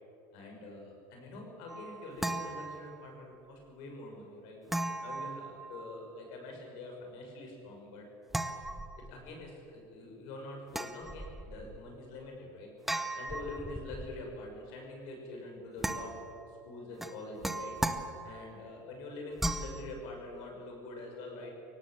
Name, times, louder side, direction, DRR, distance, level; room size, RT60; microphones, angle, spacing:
voice 1, 0.3-4.6 5.0-8.0 9.1-12.7 13.1-16.1 16.5-17.7 18.2-21.5, left 2 dB, 45° left, 1 dB, 5.9 m, -45 dB
sound 1, 1.7-3.3 4.7-6.1 8.3-9.4 10.7-11.8 12.9-14.3 15.8-16.5 17.0-18.6 19.4-19.8, right 1 dB, ahead, 0.7 m, -37 dB
23.0 x 18.0 x 7.8 m, 2.7 s
supercardioid pair, 175°, 10 cm